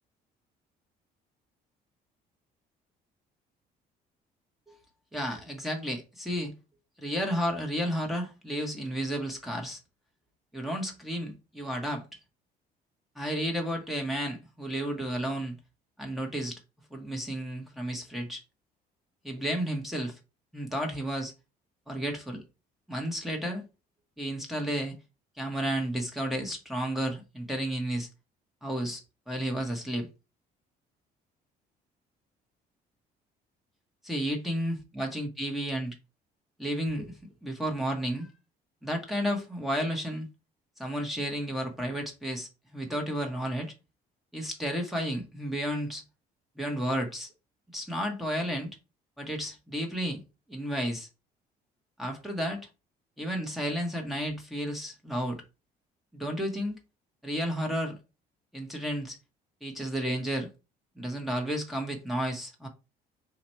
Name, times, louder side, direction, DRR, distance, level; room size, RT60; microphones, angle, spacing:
voice 1, 5.1-6.5 7.0-9.8 10.5-12.0 13.1-15.5 16.0-16.6 16.9-18.4 19.2-20.2 20.5-21.3 21.9-22.4 22.9-23.6 24.2-25.0 25.4-28.1 28.6-30.1 34.0-35.9 36.6-37.1 37.4-38.3 38.8-40.3 40.8-43.7 44.3-46.0 46.6-47.3 47.7-48.7 49.2-50.2 50.5-51.1 52.0-52.7 53.2-55.4 56.1-56.8 57.2-57.9 58.5-59.2 59.6-60.5 61.0-62.7, equal, ahead, 1.2 m, -32 dB
4.1 x 2.9 x 4.4 m
cardioid pair, 110°, 17 cm